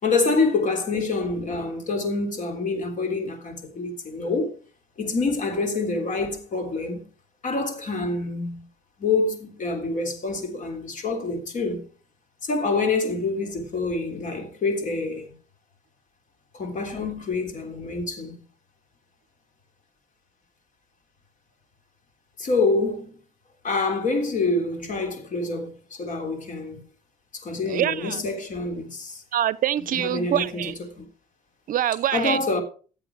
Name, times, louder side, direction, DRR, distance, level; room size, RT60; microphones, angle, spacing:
voice 1, 0.0-4.5 5.0-7.1 7.4-8.6 9.0-11.9 12.4-15.3 16.5-18.3 22.4-23.1 23.6-26.8 27.3-29.2 29.9-31.1 32.1-32.6, left 3 dB, 50° left, 3.4 m, -26 dB
voice 2, 27.7-28.2 29.3-30.7 31.7-32.4, right 12 dB, 55° right, 0.6 m, -25 dB
14.5 x 7.7 x 4.9 m
cardioid pair, 110°, 17 cm